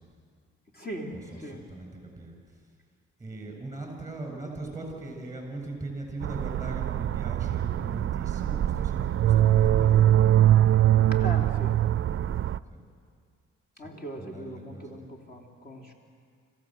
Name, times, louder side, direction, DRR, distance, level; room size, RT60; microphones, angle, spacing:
voice 1, 0.7-1.7 11.1-11.8 13.8-15.9, equal, 30° left, 1 dB, 3.5 m, -39 dB
voice 2, 1.7-2.4 3.2-11.2 12.7-12.8 13.8-13.9 14.2-14.9, right 2 dB, 10° right, 2 dB, 7.4 m, -40 dB
sound 1, 6.2-12.6, right 12 dB, 45° right, 0.5 m, -23 dB
26.5 x 16.0 x 7.8 m, 2.1 s
cardioid pair, 90°, 30 cm